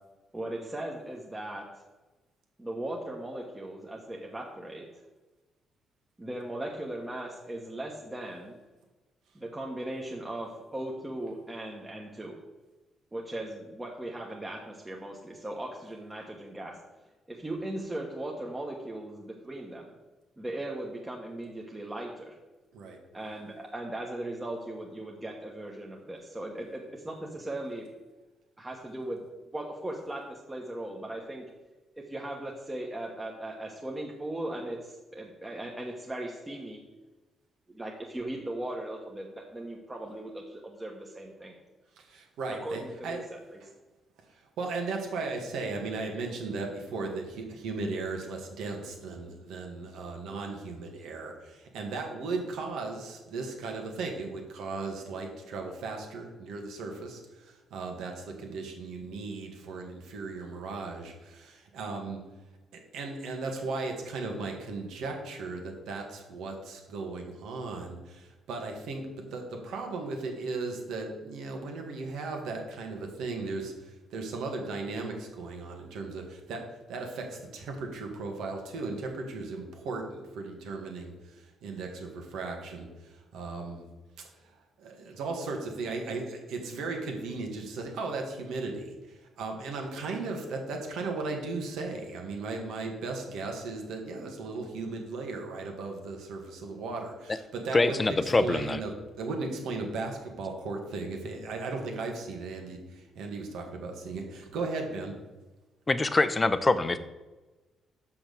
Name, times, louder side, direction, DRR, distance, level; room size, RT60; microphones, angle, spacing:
voice 1, 0.3-1.7 2.6-4.8 6.2-8.5 9.3-12.4 13.1-16.8 17.3-19.9 20.4-22.3 23.1-27.9 28.6-29.2 29.5-31.5 32.0-36.8 37.7-41.6 42.6-43.6, right 1 dB, 15° right, -2 dB, 1.2 m, -38 dB
voice 2, 41.9-43.2 43.6-43.7 44.2-62.2 62.7-83.9 84.2-105.1, right 3 dB, 85° right, 2 dB, 1.8 m, -36 dB
voice 3, 97.7-98.8 105.9-107.0, left 3 dB, 25° left, 12 dB, 0.6 m, -24 dB
6.3 x 5.8 x 6.9 m, 1.1 s
cardioid pair, 90°, 0 cm